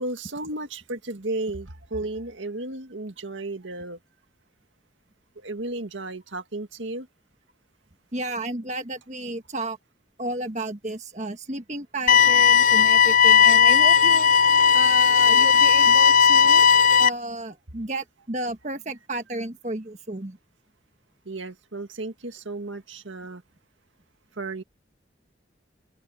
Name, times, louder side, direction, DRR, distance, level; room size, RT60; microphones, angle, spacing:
voice 1, 0.0-4.0 5.4-7.1 13.7-13.9 21.3-23.4 24.4-24.6, right 2 dB, 85° right, 2.0 m, -34 dB
voice 2, 8.1-9.8 10.2-14.3 14.7-16.7 17.0-20.4, right 2 dB, 40° right, 1.5 m, -32 dB
sound 1, 12.1-17.1, left 7 dB, 45° left, 0.5 m, -16 dB
open air
head